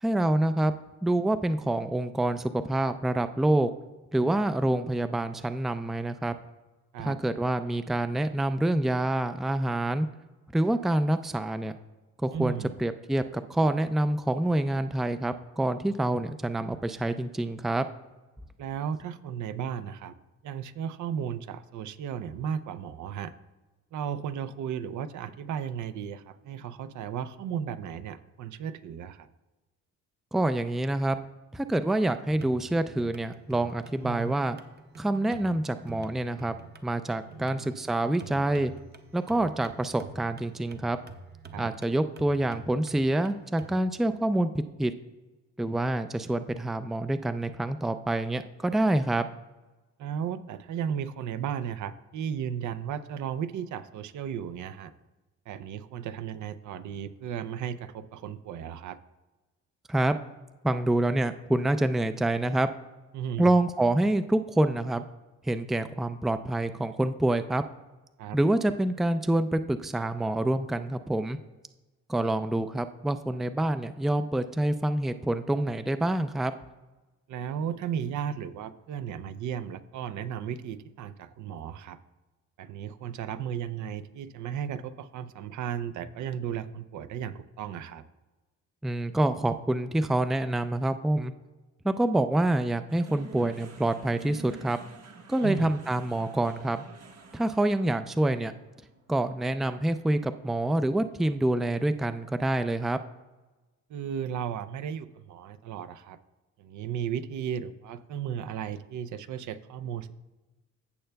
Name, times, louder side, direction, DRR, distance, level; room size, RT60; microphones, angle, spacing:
voice 1, 0.0-0.7 1.0-3.7 4.1-6.4 7.0-10.1 10.5-11.7 12.2-17.9 30.3-31.2 31.5-34.6 35.0-36.5 36.8-38.7 39.1-41.0 41.6-44.9 45.6-49.3 59.9-60.2 60.6-62.7 63.4-65.0 65.5-67.6 68.3-71.4 72.1-76.5 88.8-91.3 91.8-94.8 95.3-96.8 97.3-98.5 99.1-103.0, right 1 dB, ahead, 10 dB, 0.4 m, -27 dB
voice 2, 12.3-12.8 18.6-20.1 20.4-23.3 23.9-29.3 34.0-34.4 37.2-37.7 41.5-41.7 50.0-54.9 55.5-59.0 63.1-63.5 68.2-68.4 77.3-82.0 82.6-88.0 95.4-95.7 103.9-106.2 106.6-110.2, right 8 dB, 75° right, 12 dB, 0.6 m, -35 dB
sound 1, 32.3-43.8, right 3 dB, 35° right, 0.8 m, -48 dB
sound 2, 92.9-101.3, right 3 dB, 55° right, 1.5 m, -49 dB
15.5 x 6.7 x 2.3 m, 1.1 s
cardioid pair, 90°, 30 cm